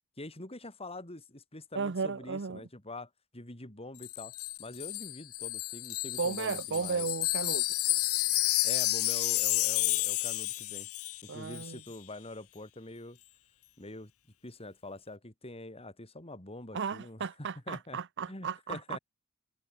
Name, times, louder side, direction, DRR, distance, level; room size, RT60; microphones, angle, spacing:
voice 1, 0.2-7.1 8.6-10.9 11.2-13.2 13.8-14.1 14.4-18.0 18.3-19.0, left 2 dB, 25° left, 3.6 m, -45 dB
voice 2, 1.7-2.6 6.2-7.6 11.3-11.8 16.7-19.0, right 5 dB, 55° right, 0.7 m, -34 dB
Wind chime, 4.0-11.3 11.5-11.7, left 18 dB, 75° left, 1.2 m, -31 dB
head